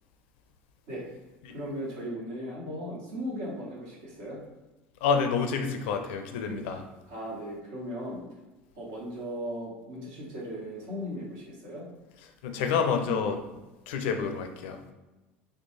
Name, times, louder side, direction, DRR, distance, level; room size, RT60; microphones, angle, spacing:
voice 1, 1.5-4.4 7.1-8.2 8.7-11.8, equal, 65° right, -4 dB, 1.4 m, -37 dB
voice 2, 5.0-6.8 12.4-13.4 13.9-14.8, left 6 dB, 65° left, 6 dB, 0.5 m, -28 dB
4.4 x 2.3 x 3.1 m, 1.1 s
hypercardioid pair, 75°, 7 cm